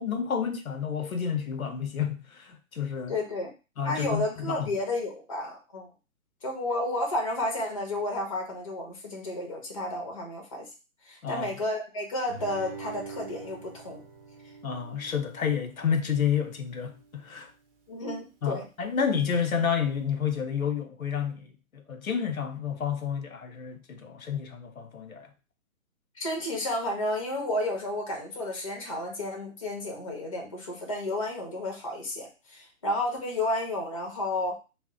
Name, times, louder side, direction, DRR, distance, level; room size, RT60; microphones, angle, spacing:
voice 1, 0.0-3.2 3.8-4.7 11.2-11.5 14.6-17.5 18.4-25.3, left 7 dB, 85° left, 0.6 m, -30 dB
voice 2, 3.1-3.5 3.8-5.9 6.4-10.7 11.0-14.0 17.9-18.6 26.2-34.6, left 1 dB, 25° left, 0.4 m, -32 dB
Guitar, 12.3-17.3, right 4 dB, 45° right, 0.7 m, -45 dB
2.1 x 2.1 x 3.4 m
figure-of-eight pair, 130°, 41 cm